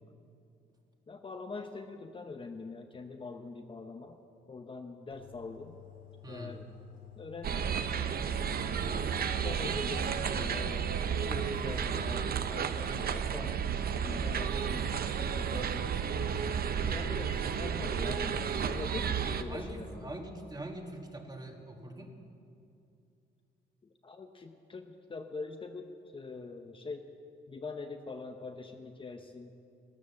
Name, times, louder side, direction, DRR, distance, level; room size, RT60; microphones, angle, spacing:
voice 1, 1.1-4.2 4.5-5.8 6.3-6.7 7.2-7.9 8.8-10.9 11.3-13.6 14.0-15.9 16.8-20.1 23.8-27.1 27.5-29.5, left 4 dB, 25° left, 5 dB, 0.8 m, -43 dB
sound 1, 5.1-12.3, left 14 dB, 70° left, 3.2 m, -53 dB
voice 2, 6.2-6.6 19.5-22.2, right 1 dB, 20° right, 2 dB, 1.8 m, -43 dB
sound 2, 7.4-19.4, right 7 dB, 50° right, 0.7 m, -32 dB
13.0 x 12.0 x 7.0 m, 2.6 s
cardioid pair, 90°, 20 cm